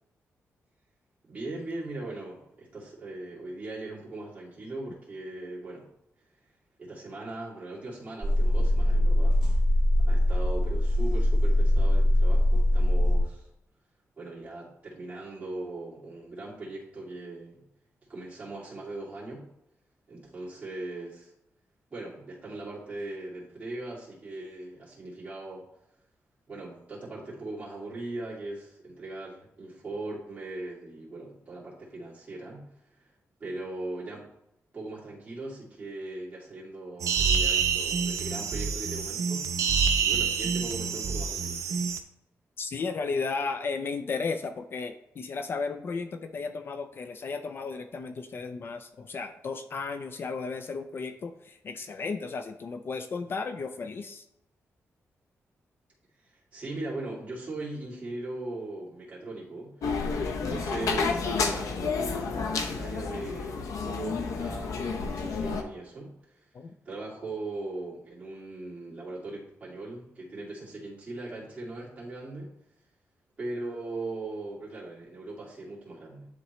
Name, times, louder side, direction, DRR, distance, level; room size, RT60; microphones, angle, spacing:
voice 1, 1.3-5.9 6.8-9.4 10.1-13.5 14.2-17.6 18.1-19.4 20.1-21.3 21.9-25.6 26.5-32.6 32.9-33.1 33.4-34.2 34.7-41.8 56.2-59.7 60.4-66.4 66.8-72.5 73.4-76.3, right 2 dB, 25° right, -7 dB, 2.7 m, -39 dB
sound 1, 8.2-13.2, left 1 dB, 10° right, 2.3 m, -22 dB
sound 2, 37.0-42.0, right 6 dB, 80° right, 0.7 m, -27 dB
voice 2, 42.6-54.3 66.5-66.7, left 4 dB, 45° left, 7 dB, 0.4 m, -34 dB
sound 3, 59.8-65.6, left 4 dB, 90° left, 0.7 m, -30 dB
10.5 x 3.8 x 3.1 m, 0.83 s
wide cardioid pair, 150°, 5 cm